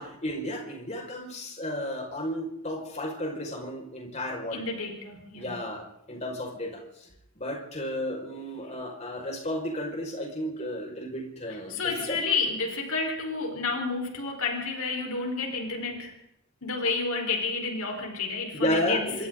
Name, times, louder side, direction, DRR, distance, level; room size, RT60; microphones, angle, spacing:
voice 1, 0.0-4.6 5.3-6.8 7.4-12.2 18.5-19.3, left 1 dB, 30° left, 0 dB, 5.7 m, -33 dB
voice 2, 4.5-5.5 11.7-16.2 16.6-19.0, left 4 dB, 70° left, 2 dB, 4.6 m, -30 dB
26.5 x 25.5 x 4.0 m, 0.77 s
head